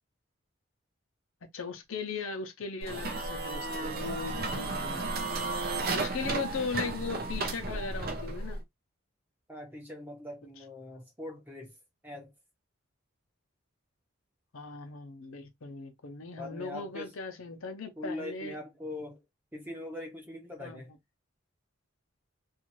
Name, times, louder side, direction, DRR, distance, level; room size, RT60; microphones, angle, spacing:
voice 1, 1.4-5.0 5.9-8.6 14.5-18.5 20.6-20.8, left 4 dB, 80° left, 0.7 m, -38 dB
sound 1, 2.8-8.6, right 3 dB, 45° right, 0.5 m, -33 dB
voice 2, 9.5-11.8 12.0-12.3 16.4-17.1 18.0-19.2 19.5-20.9, left 1 dB, 10° right, 0.8 m, -42 dB
2.6 x 2.4 x 2.9 m
head